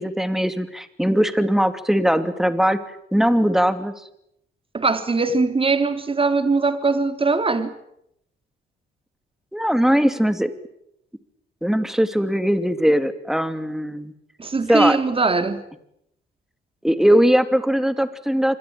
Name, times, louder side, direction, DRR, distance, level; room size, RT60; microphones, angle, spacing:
voice 1, 0.0-2.8 3.1-3.9 9.5-10.5 11.6-14.1 14.7-15.0 16.8-18.6, equal, ahead, 2.8 m, -20 dB
voice 2, 4.7-7.7 14.4-15.6, right 3 dB, 25° right, 3.5 m, -21 dB
27.0 x 21.5 x 9.0 m
cardioid pair, 90°, 20 cm